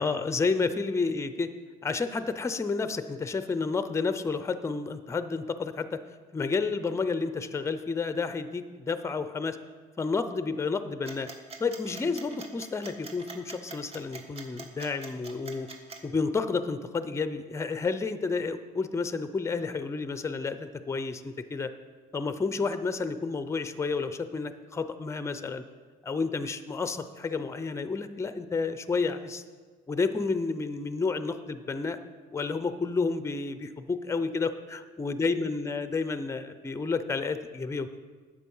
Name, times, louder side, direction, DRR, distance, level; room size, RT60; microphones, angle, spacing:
voice 1, 0.0-1.5 1.8-6.0 6.3-9.6 10.0-11.3 11.6-15.7 16.0-21.7 22.1-25.6 26.0-29.4 29.9-32.0 32.3-37.9, left 4 dB, 15° left, 11 dB, 0.5 m, -30 dB
sound 1, 11.1-16.0, right 3 dB, 35° right, 1.3 m, -44 dB
9.8 x 6.9 x 5.5 m, 1.5 s
cardioid pair, 110°, 17 cm